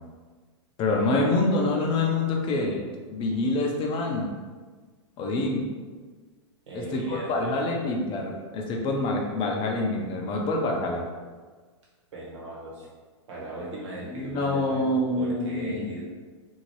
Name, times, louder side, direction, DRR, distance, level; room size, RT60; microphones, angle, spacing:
voice 1, 0.8-2.8 3.1-4.3 5.2-5.7 6.7-11.0 14.1-15.9, left 2 dB, 35° left, 0 dB, 0.6 m, -26 dB
voice 2, 6.7-7.8 12.1-12.9 13.3-16.0, right 1 dB, 75° right, -4 dB, 1.2 m, -38 dB
2.7 x 2.7 x 3.0 m, 1.4 s
hypercardioid pair, 110°, 16 cm